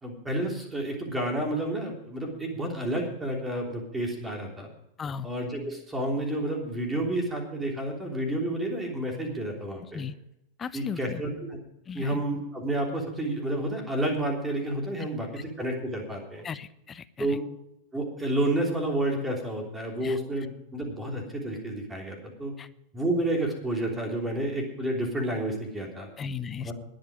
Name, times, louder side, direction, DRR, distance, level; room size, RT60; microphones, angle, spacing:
voice 1, 0.0-4.7 5.2-10.0 10.7-11.6 11.9-16.4 17.2-17.4 17.9-22.5 22.9-26.1 26.6-26.7, right 1 dB, 10° right, 1 dB, 3.4 m, -30 dB
voice 2, 10.6-11.2 11.9-12.2 16.4-17.4 20.0-20.2 22.6-22.7 26.2-26.7, left 6 dB, 20° left, 15 dB, 0.8 m, -36 dB
21.0 x 8.0 x 5.0 m, 0.80 s
figure-of-eight pair, 90°, 0 cm